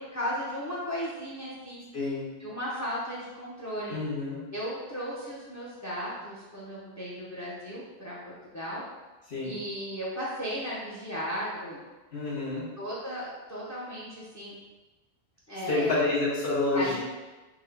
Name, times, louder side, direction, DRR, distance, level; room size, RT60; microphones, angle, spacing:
voice 1, 0.1-1.8 2.4-4.0 4.5-8.2 8.5-8.8 9.4-11.8 12.8-14.6 15.5-16.0 16.7-17.0, equal, 20° left, -6 dB, 0.5 m, -35 dB
voice 2, 1.9-2.3 3.9-4.4 9.3-9.5 12.1-12.6 15.7-17.0, left 2 dB, 80° left, -8 dB, 1.5 m, -28 dB
3.6 x 2.5 x 3.3 m, 1.2 s
omnidirectional pair, 1.0 m